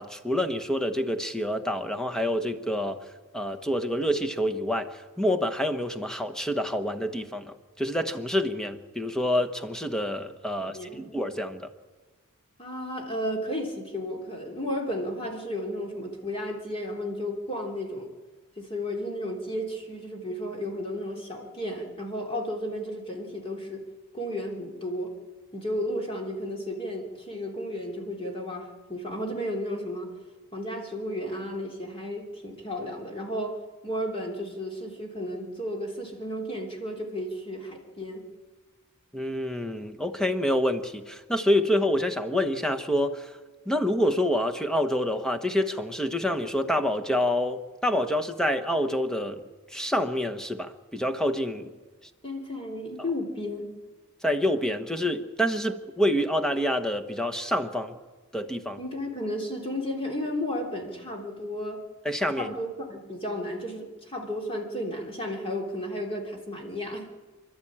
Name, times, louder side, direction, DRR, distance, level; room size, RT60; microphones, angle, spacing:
voice 1, 0.0-3.0 3.3-4.9 5.2-11.7 39.1-43.3 43.7-49.4 49.7-51.7 54.2-58.0 58.3-58.8 62.0-62.5, equal, 5° left, 8 dB, 1.1 m, -27 dB
voice 2, 10.6-11.1 12.6-18.1 18.6-23.8 24.1-25.1 25.5-30.1 30.5-33.6 33.8-38.2 52.2-53.8 58.8-61.8 62.3-67.1, equal, 25° left, 1 dB, 3.3 m, -33 dB
27.5 x 12.5 x 8.7 m, 1.3 s
head